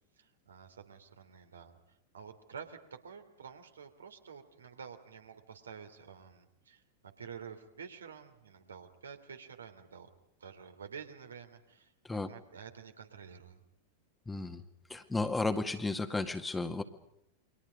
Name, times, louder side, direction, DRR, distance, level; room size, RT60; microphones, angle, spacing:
voice 1, 0.2-10.1 10.4-13.6, right 7 dB, 70° right, 7 dB, 3.0 m, -50 dB
voice 2, 14.3-14.6 14.9-16.8, left 3 dB, 10° left, 8 dB, 1.9 m, -33 dB
29.5 x 24.5 x 5.2 m, 0.76 s
figure-of-eight pair, 90°, 0 cm